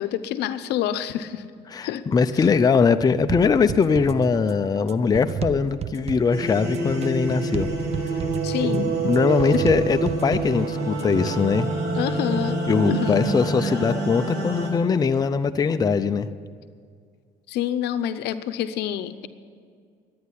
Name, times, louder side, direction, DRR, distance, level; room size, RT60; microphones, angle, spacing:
voice 1, 0.0-1.4 1.8-2.0 2.4-2.5 8.4-8.9 9.5-9.7 12.0-13.3 17.5-19.3, left 10 dB, 80° left, 11 dB, 0.7 m, -27 dB
voice 2, 1.7-7.7 8.0-8.2 8.6-11.7 12.7-16.3, left 5 dB, 20° left, 9 dB, 0.5 m, -21 dB
sound 1, 3.3-11.7, right 8 dB, 40° right, 0.5 m, -34 dB
sound 2, 6.3-14.7, right 3 dB, 75° right, 3.5 m, -27 dB
11.5 x 9.4 x 9.9 m, 2.1 s
cardioid pair, 110°, 17 cm